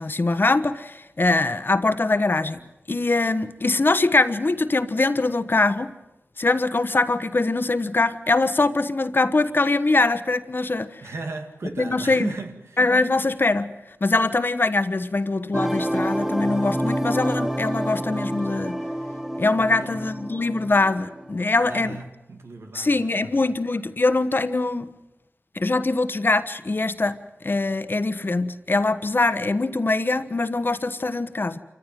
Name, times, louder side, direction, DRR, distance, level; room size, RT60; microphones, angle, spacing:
voice 1, 0.0-2.6 2.9-5.9 6.4-11.0 11.8-12.3 12.8-13.7 14.0-18.8 19.4-22.0 22.7-24.9 25.5-27.2 27.4-31.6, left 3 dB, 50° left, 1.2 m, -22 dB
voice 2, 11.0-13.1 19.6-20.0 21.6-23.5, right 3 dB, 85° right, 2.3 m, -36 dB
sound 1, 15.5-21.4, equal, 10° right, 1.0 m, -28 dB
27.0 x 15.0 x 9.4 m
wide cardioid pair, 60°, 4 cm